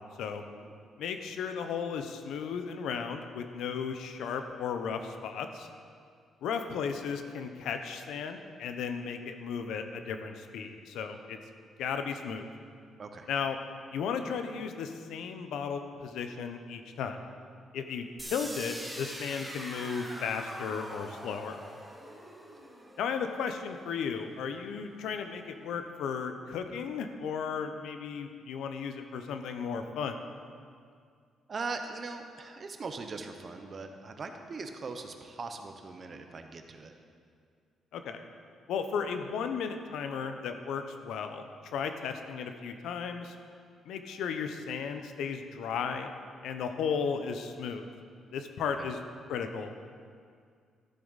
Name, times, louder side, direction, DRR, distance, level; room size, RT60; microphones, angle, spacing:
voice 1, 1.0-5.7 6.4-11.4 11.8-12.5 13.3-13.6 13.9-17.2 17.7-21.6 23.0-30.2 37.9-38.2 38.7-43.3 43.9-46.1 46.4-47.9 48.3-49.0 49.3-49.8, left 6 dB, 80° left, 7 dB, 0.7 m, -35 dB
sound 1, 18.2-24.1, right 1 dB, ahead, 1.0 m, -43 dB
voice 2, 31.5-36.9, right 4 dB, 35° right, 6 dB, 0.7 m, -40 dB
13.0 x 7.2 x 4.0 m, 2.2 s
cardioid pair, 155°, 0 cm